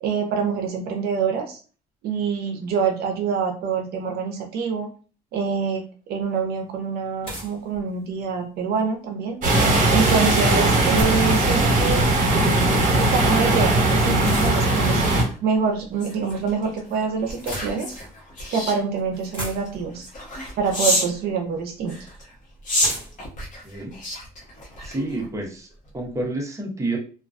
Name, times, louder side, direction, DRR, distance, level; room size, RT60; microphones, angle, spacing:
voice 1, 0.0-1.6 2.0-4.9 5.3-9.4 9.9-12.1 12.9-15.0 15.4-18.0 18.5-20.1 20.6-22.0, right 5 dB, 65° right, 3 dB, 0.5 m, -25 dB
sound 1, 6.2-6.3 7.2-8.4 10.4-11.6 14.2-14.9 16.0-16.6 17.2-18.2 18.8-18.9 19.1-20.0 21.1-21.2 22.8-24.3, equal, 30° left, 1.2 m, -36 dB
sound 2, 9.4-15.2, right 2 dB, 50° right, 1.0 m, -19 dB
sound 3, 13.0-21.2 21.8-25.4 25.8-26.1, left 1 dB, 50° left, 0.9 m, -32 dB
voice 2, 23.6-23.9 24.8-25.7 25.9-27.0, right 2 dB, 20° right, 0 dB, 0.7 m, -29 dB
2.3 x 2.2 x 2.4 m, 0.38 s
cardioid pair, 110°, 17 cm